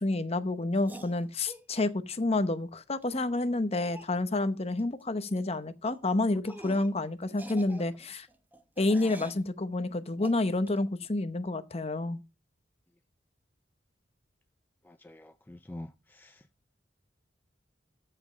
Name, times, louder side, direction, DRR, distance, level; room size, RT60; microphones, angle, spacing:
voice 1, 0.0-8.3 8.8-12.2, left 2 dB, 35° left, 0.9 m, -29 dB
sound 1, 0.8-1.7 3.0-3.1 3.3-3.4 3.9-4.2 4.8-5.0 5.3-5.5 5.9-6.0 6.5-7.0 7.3-9.4 10.2-10.8, right 1 dB, 10° right, 0.8 m, -47 dB
voice 2, 14.8-16.5, left 1 dB, 10° left, 0.4 m, -46 dB
14.0 x 5.1 x 5.6 m
head